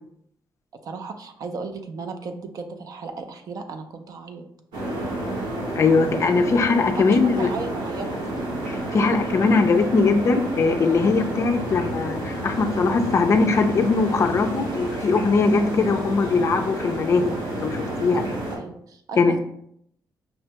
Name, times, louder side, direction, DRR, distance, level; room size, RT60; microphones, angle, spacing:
voice 1, 0.8-4.5 7.0-8.1 17.5-17.7 18.1-19.4, right 4 dB, 55° right, 6 dB, 0.5 m, -35 dB
sound 1, 4.7-18.6, right 1 dB, 80° right, 1.3 m, -30 dB
voice 2, 5.7-7.5 8.7-18.2 19.2-19.4, left 4 dB, 40° left, 6 dB, 0.4 m, -21 dB
5.3 x 2.2 x 2.8 m, 0.71 s
cardioid pair, 150°, 8 cm